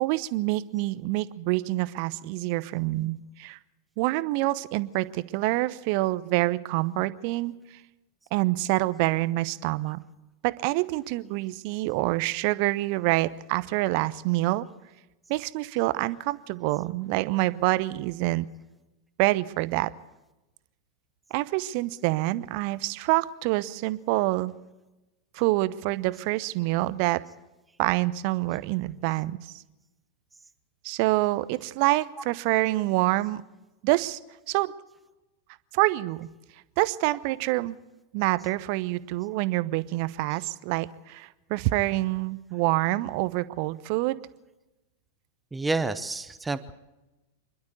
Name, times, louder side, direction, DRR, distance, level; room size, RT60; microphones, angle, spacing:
voice 1, 0.0-3.6 4.0-7.5 8.3-10.0 10.4-14.7 15.3-18.5 19.2-19.9 21.3-24.5 25.3-27.2 27.8-29.4 30.8-33.4 33.8-34.2 34.5-34.7 35.7-36.3 36.8-37.8 38.1-44.2, right 19 dB, 45° right, 17 dB, 0.8 m, -26 dB
voice 2, 45.5-46.7, right 3 dB, 10° right, 13 dB, 0.9 m, -29 dB
27.0 x 12.0 x 8.1 m, 1.0 s
figure-of-eight pair, 90°, 0 cm